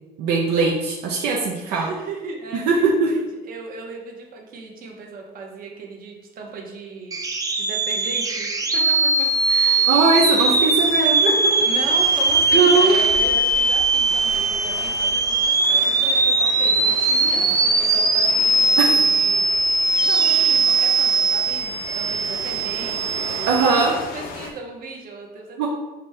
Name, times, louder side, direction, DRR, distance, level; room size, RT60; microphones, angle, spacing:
voice 1, 0.2-1.9 2.7-3.1 9.9-11.3 12.5-13.0 18.8-19.0 23.5-23.9 25.6-25.7, right 4 dB, 85° right, -2 dB, 0.6 m, -19 dB
voice 2, 1.6-7.2 7.5-9.9 11.6-19.4 20.1-25.7, right 3 dB, 60° right, 1 dB, 0.9 m, -36 dB
sound 1, 7.1-23.9, right 3 dB, 20° right, 0.5 m, -20 dB
sound 2, 9.2-24.5, left 5 dB, 60° left, 0.6 m, -37 dB
5.0 x 2.7 x 3.3 m, 1.1 s
cardioid pair, 110°, 17 cm